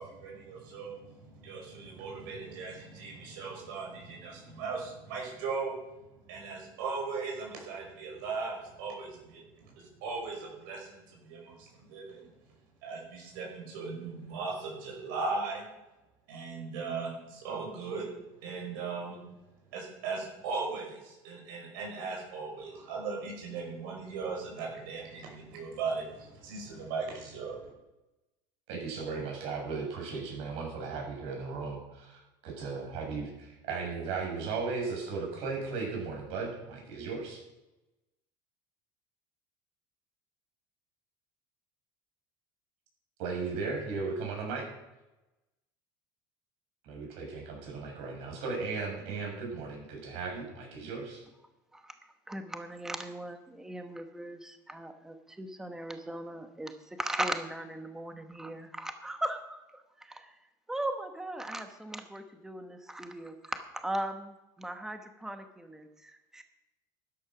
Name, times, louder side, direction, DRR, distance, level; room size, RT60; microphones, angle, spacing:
voice 1, 0.0-5.7 6.3-12.3 12.8-15.6 16.3-18.1 18.4-19.2 19.7-27.7, right 4 dB, 85° right, 0 dB, 5.9 m, -38 dB
voice 2, 28.7-37.4 43.2-44.7 46.8-51.2, right 4 dB, 65° right, 1 dB, 6.4 m, -36 dB
voice 3, 52.3-60.3 60.7-66.4, right 1 dB, 5° right, 6 dB, 1.1 m, -38 dB
13.0 x 11.0 x 6.0 m, 0.99 s
cardioid pair, 150°, 11 cm